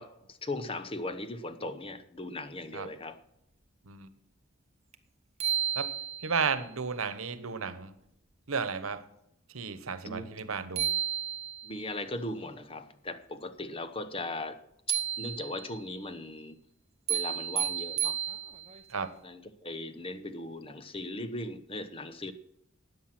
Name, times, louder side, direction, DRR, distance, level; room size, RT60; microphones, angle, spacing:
voice 1, 0.0-3.2 10.0-10.3 11.6-14.6 14.9-16.6 17.1-18.2 19.2-22.3, left 2 dB, 25° left, 0.9 m, -38 dB
sound 1, 4.9-5.0 5.4-6.5 10.4-10.5 10.8-11.8 14.9-15.8 17.1-18.8, right 10 dB, 30° right, 0.9 m, -32 dB
voice 2, 6.2-7.9 8.5-9.0 9.5-10.9 18.9-19.1, right 5 dB, 90° right, 1.1 m, -33 dB
13.5 x 9.3 x 6.0 m
head